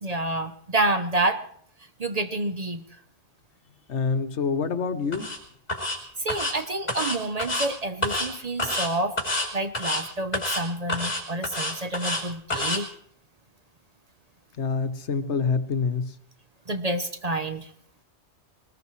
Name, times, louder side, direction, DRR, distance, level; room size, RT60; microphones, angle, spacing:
voice 1, 0.0-1.4 2.0-3.0 6.2-9.2 9.5-12.9 16.7-17.7, right 2 dB, 40° right, 7 dB, 0.8 m, -28 dB
voice 2, 3.9-5.3 14.6-16.1, left 5 dB, 75° left, 9 dB, 1.2 m, -26 dB
sound 1, 5.1-5.4 5.7-6.0 6.3-6.5 6.9-7.7 8.0-8.3 8.6-8.9 9.2-9.5 9.7-10.0 10.3-10.6 10.9-12.2 12.5-12.8, left 1 dB, 35° left, 3.6 m, -28 dB
21.5 x 19.5 x 3.2 m, 0.67 s
omnidirectional pair, 1.2 m